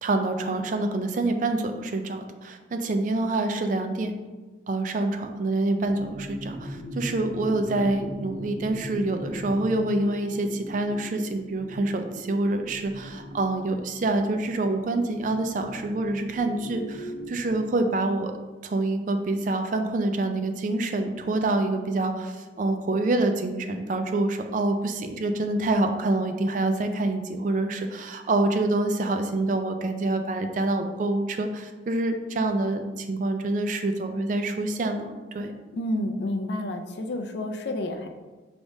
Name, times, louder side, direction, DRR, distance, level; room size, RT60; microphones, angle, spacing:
voice 1, 0.0-4.1 4.7-18.3 18.6-35.5, right 2 dB, 45° right, 6 dB, 0.3 m, -26 dB
sound 1, 5.8-17.6, equal, 35° left, 0.9 m, -40 dB
voice 2, 35.7-38.1, left 1 dB, 65° left, 5 dB, 0.4 m, -30 dB
4.7 x 3.4 x 2.6 m, 1.3 s
head